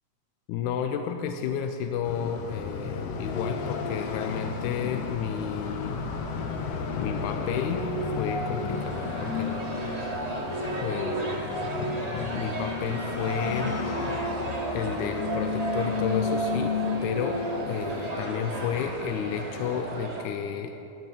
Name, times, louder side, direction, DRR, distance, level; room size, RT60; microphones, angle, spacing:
voice 1, 0.5-6.0 7.0-7.9 8.2-9.9 10.8-11.5 12.3-13.8 14.0-14.3 14.7-20.8, left 7 dB, 90° left, 6 dB, 2.1 m, -32 dB
sound 1, 2.0-20.0, left 5 dB, 65° left, 1.8 m, -36 dB
sound 2, 7.5-18.2, left 2 dB, 30° right, 2.9 m, -32 dB
sound 3, 8.7-20.2, right 1 dB, 60° right, 0.4 m, -35 dB
17.0 x 5.8 x 9.1 m, 2.9 s
omnidirectional pair, 3.3 m